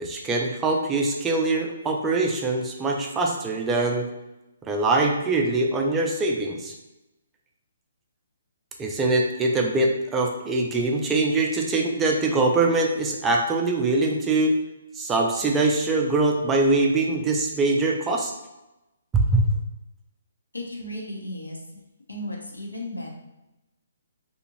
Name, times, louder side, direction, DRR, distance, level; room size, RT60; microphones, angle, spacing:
voice 1, 0.0-4.1 4.7-6.7 8.8-14.5 15.0-18.3 19.1-19.5, right 2 dB, 15° right, 0 dB, 0.3 m, -23 dB
voice 2, 20.5-21.6 22.1-23.1, left 1 dB, 75° left, -1 dB, 0.6 m, -34 dB
2.5 x 2.4 x 2.8 m, 0.98 s
figure-of-eight pair, 130°, 0 cm